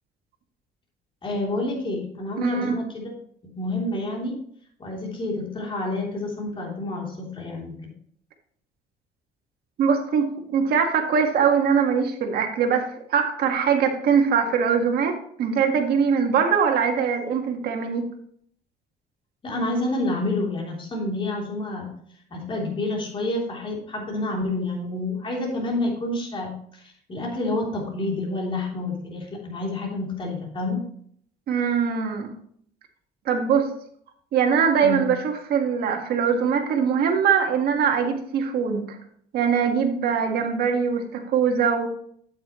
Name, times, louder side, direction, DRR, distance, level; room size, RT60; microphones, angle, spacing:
voice 1, 1.2-3.1 3.4-4.4 4.8-7.9 19.4-21.9 22.3-30.9 34.8-35.1, left 2 dB, 30° left, -2 dB, 3.2 m, -29 dB
voice 2, 2.4-2.7 9.8-18.0 31.5-32.3 33.2-33.7 34.3-39.0 39.3-41.9, right 6 dB, 65° right, 3 dB, 1.7 m, -22 dB
8.5 x 8.4 x 3.1 m, 0.64 s
cardioid pair, 110°, 17 cm